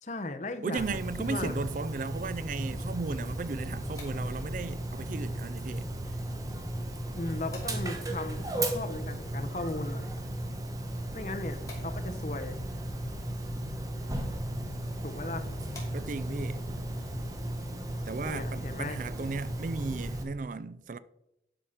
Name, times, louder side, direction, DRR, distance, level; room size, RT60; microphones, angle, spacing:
voice 1, 0.0-1.5 7.1-10.2 11.1-12.6 15.0-15.5 18.2-19.0, left 2 dB, 40° left, 0.9 m, -37 dB
voice 2, 0.6-5.8 15.9-16.6 18.1-21.0, right 4 dB, 45° right, 0.4 m, -35 dB
Dog, 0.8-20.2, right 1 dB, 20° right, 1.2 m, -35 dB
sound 1, 3.6-16.5, left 2 dB, 20° left, 2.7 m, -57 dB
11.5 x 5.0 x 5.7 m
head